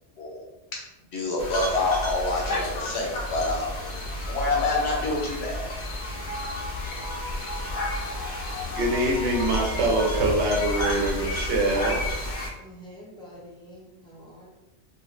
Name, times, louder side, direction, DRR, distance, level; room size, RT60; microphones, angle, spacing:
voice 1, 1.1-3.7 4.3-5.7, left 2 dB, 70° left, -1 dB, 1.0 m, -27 dB
sound 1, 1.4-12.5, left 1 dB, 55° left, 0.6 m, -31 dB
sound 2, 5.0-11.7 12.0-12.1, equal, 50° right, 0.9 m, -40 dB
voice 2, 8.7-12.0, right 2 dB, 80° right, 0 dB, 0.9 m, -24 dB
voice 3, 12.6-14.5, equal, 5° left, -6 dB, 0.5 m, -46 dB
2.4 x 2.3 x 3.1 m, 1.0 s
omnidirectional pair, 1.2 m